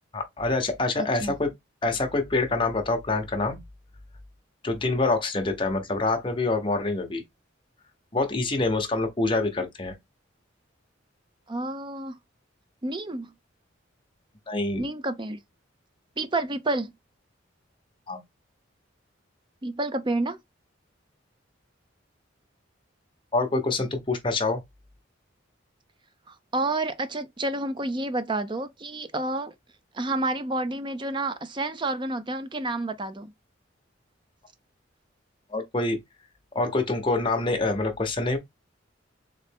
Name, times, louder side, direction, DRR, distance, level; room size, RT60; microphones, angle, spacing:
voice 1, 0.1-1.5 1.8-3.6 4.6-7.2 8.1-9.9 14.5-14.9 18.1-18.2 23.3-24.6 35.5-36.0 36.5-38.4, left 2 dB, 25° left, 0.9 m, -26 dB
voice 2, 1.0-1.4 11.5-12.2 12.8-13.3 14.8-15.4 16.2-16.9 19.6-20.4 26.3-29.5 29.9-33.3, right 2 dB, 25° right, 0.5 m, -29 dB
3.8 x 3.2 x 3.5 m
head